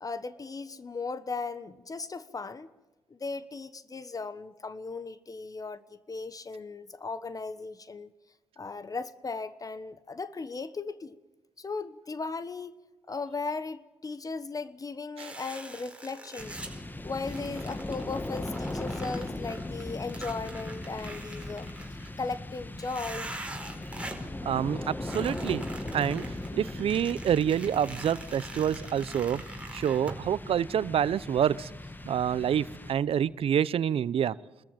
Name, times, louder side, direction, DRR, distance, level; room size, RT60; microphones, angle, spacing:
voice 1, 0.0-2.7 3.1-5.8 6.1-8.1 8.6-11.2 11.6-12.8 13.1-16.6 17.0-23.3, left 4 dB, 35° left, 1.2 m, -37 dB
sound 1, 15.2-16.8 17.3-22.1 22.8-24.3 25.0-30.2, right 2 dB, 10° right, 4.8 m, -44 dB
sound 2, 16.4-33.3, left 1 dB, 20° left, 1.7 m, -38 dB
voice 2, 24.4-25.6 25.9-26.3 26.5-29.4 29.7-31.7 32.1-34.4, right 9 dB, 70° right, 0.7 m, -27 dB
26.0 x 14.0 x 9.1 m
cardioid pair, 70°, 10 cm